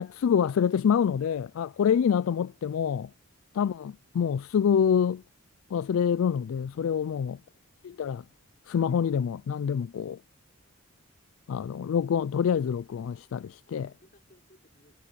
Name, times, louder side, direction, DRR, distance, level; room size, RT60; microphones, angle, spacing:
voice 1, 0.0-3.1 3.6-5.2 5.7-7.4 7.9-8.2 8.7-10.2 11.5-13.9, left 7 dB, 70° left, 0.3 m, -26 dB
voice 2, 13.7-15.1, left 1 dB, 40° left, 5.5 m, -63 dB
head